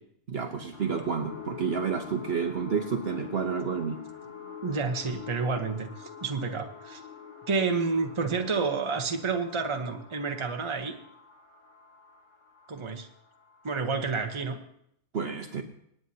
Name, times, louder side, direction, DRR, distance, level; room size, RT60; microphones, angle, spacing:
voice 1, 0.3-4.0 15.1-15.6, right 6 dB, 50° right, 4 dB, 1.0 m, -30 dB
sound 1, 0.7-13.9 14.4-14.5, left 7 dB, 60° left, 1.6 m, -46 dB
voice 2, 4.6-7.0 7.5-11.0 12.7-13.1 13.6-14.6, right 4 dB, 25° right, 5 dB, 1.0 m, -29 dB
26.5 x 9.3 x 2.8 m, 0.72 s
omnidirectional pair, 1.5 m